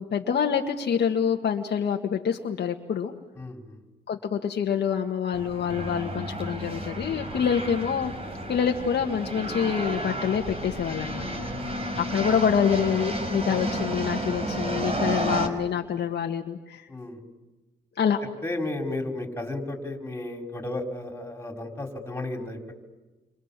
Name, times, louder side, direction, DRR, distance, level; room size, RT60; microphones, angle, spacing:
voice 1, 0.0-3.1 4.1-8.1 8.5-11.3 12.0-16.9 18.0-18.2, left 7 dB, 55° left, 2 dB, 1.8 m, -26 dB
voice 2, 3.4-3.8 7.3-7.4 11.2-11.5 11.7-11.9 13.5-13.6 15.0-15.4 16.9-17.2 18.4-22.6, left 2 dB, 10° left, 3 dB, 5.5 m, -34 dB
sound 1, 5.3-15.5, right 1 dB, 30° right, 4.8 m, -31 dB
29.5 x 25.5 x 7.6 m, 1.1 s
cardioid pair, 90°, 20 cm